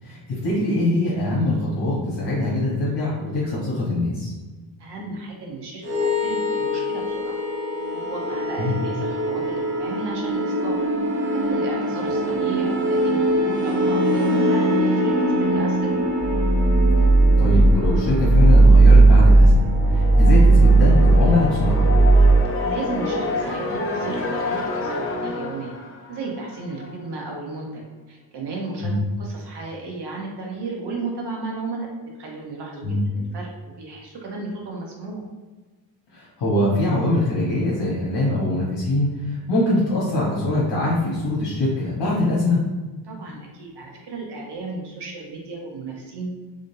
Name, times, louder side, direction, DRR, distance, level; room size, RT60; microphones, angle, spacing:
voice 1, 0.0-4.3 8.6-8.7 17.4-21.9 28.8-29.0 32.8-33.0 36.1-42.6, left 1 dB, 70° left, -7 dB, 1.2 m, -23 dB
voice 2, 4.8-7.4 8.1-10.9 11.3-15.9 22.6-25.8 26.1-27.8 28.1-28.9 29.2-31.9 32.2-33.5 33.8-35.2 43.0-46.3, right 3 dB, 65° right, -1 dB, 1.1 m, -34 dB
sound 1, 5.8-22.4, right 2 dB, 25° right, 0.8 m, -17 dB
sound 2, 19.3-27.0, left 2 dB, 30° left, 0.6 m, -29 dB
3.8 x 3.5 x 2.7 m, 1.3 s
cardioid pair, 115°, 43 cm